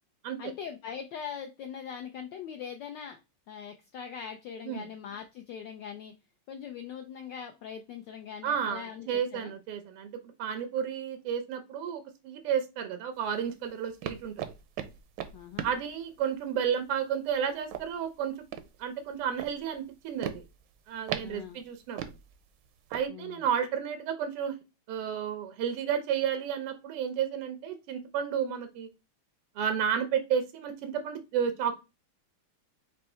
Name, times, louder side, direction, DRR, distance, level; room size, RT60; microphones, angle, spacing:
voice 1, 0.4-3.2 3.5-6.1 6.5-9.5 15.3-15.7 21.2-21.6 23.1-23.4, left 7 dB, 75° left, 4 dB, 1.0 m, -41 dB
voice 2, 8.4-10.1 10.4-14.3 15.6-18.4 18.8-20.4 20.9-22.0 22.9-24.6 24.9-28.9 29.6-31.8, right 8 dB, 90° right, 8 dB, 1.7 m, -32 dB
sound 1, 13.2-23.1, right 10 dB, 75° right, 1.1 m, -41 dB
4.5 x 2.6 x 4.3 m, 0.27 s
omnidirectional pair, 2.4 m